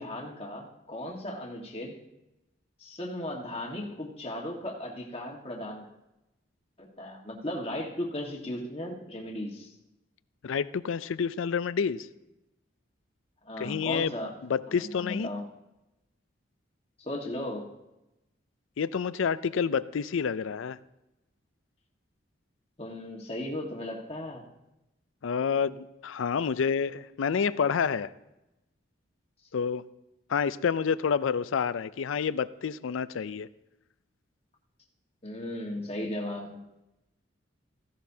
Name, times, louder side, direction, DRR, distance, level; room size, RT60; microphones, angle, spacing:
voice 1, 0.0-2.0 2.8-5.8 6.8-9.7 13.4-14.3 14.7-15.4 17.0-17.7 22.8-24.4 35.2-36.8, left 1 dB, 30° left, -1 dB, 1.5 m, -36 dB
voice 2, 10.4-12.1 13.6-14.1 14.4-15.3 18.8-20.8 25.2-28.1 29.5-29.8 30.3-33.5, left 6 dB, 80° left, 16 dB, 0.4 m, -28 dB
15.5 x 11.5 x 2.8 m, 0.93 s
head